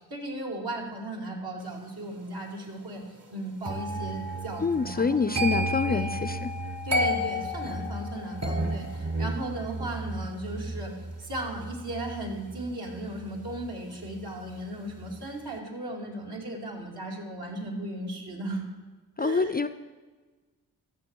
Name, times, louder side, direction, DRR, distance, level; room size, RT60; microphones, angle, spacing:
voice 1, 0.0-3.0 3.3-5.4 5.9-6.2 6.8-10.9 11.2-18.6 19.2-19.7, right 1 dB, 65° right, -2 dB, 2.6 m, -36 dB
sound 1, 3.6-14.6 14.9-15.3, equal, 40° right, 1.2 m, -33 dB
voice 2, 4.6-6.5 19.2-19.7, left 4 dB, 25° left, 11 dB, 0.4 m, -26 dB
13.5 x 6.9 x 4.6 m, 1.3 s
cardioid pair, 50°, 40 cm